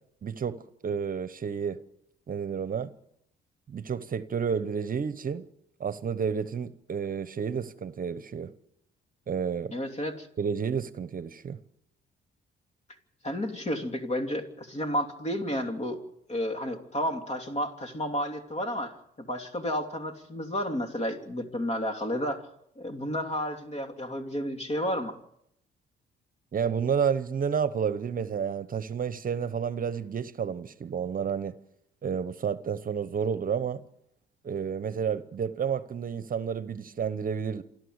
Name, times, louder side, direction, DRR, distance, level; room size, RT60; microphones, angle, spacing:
voice 1, 0.2-0.6 0.8-1.8 2.3-2.9 3.7-5.5 5.8-8.5 9.3-9.7 10.4-11.6 26.5-31.5 32.0-33.8 34.4-37.6, right 7 dB, 45° right, 1.0 m, -30 dB
voice 2, 9.7-10.3 13.2-16.0 16.3-22.4 22.8-25.2, equal, 35° left, 3.0 m, -31 dB
27.5 x 12.5 x 8.1 m
cardioid pair, 90°, 20 cm